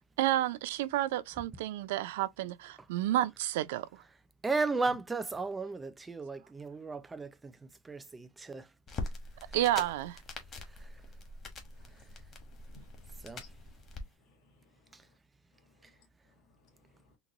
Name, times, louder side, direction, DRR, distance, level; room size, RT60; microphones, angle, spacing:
voice 1, 0.0-3.9 9.5-10.1, right 14 dB, 85° right, 0.4 m, -30 dB
voice 2, 4.4-8.7 10.7-10.9 13.2-13.5 14.9-15.0, right 3 dB, 10° right, 0.4 m, -35 dB
sound 1, 8.9-14.0, left 2 dB, 30° left, 0.9 m, -43 dB
voice 3, 11.6-12.2 12.5-13.5 14.2-15.1 15.6-16.1 16.5-17.1, left 3 dB, 55° left, 1.5 m, -64 dB
3.9 x 2.2 x 2.9 m
supercardioid pair, 155°, 0 cm